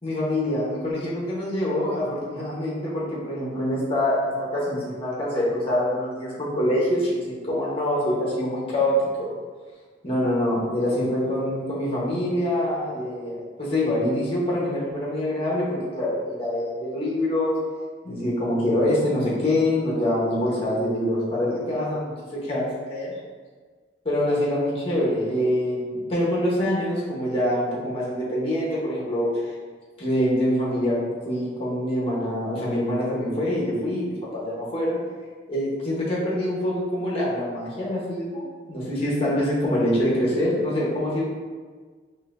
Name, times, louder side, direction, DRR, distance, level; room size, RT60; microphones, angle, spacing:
voice 1, 0.0-9.3 10.0-17.6 18.0-23.1 24.0-29.5 30.0-31.0 31.2-35.0 35.5-41.3, left 1 dB, 30° left, -6 dB, 0.9 m, -25 dB
4.1 x 2.6 x 2.5 m, 1.5 s
head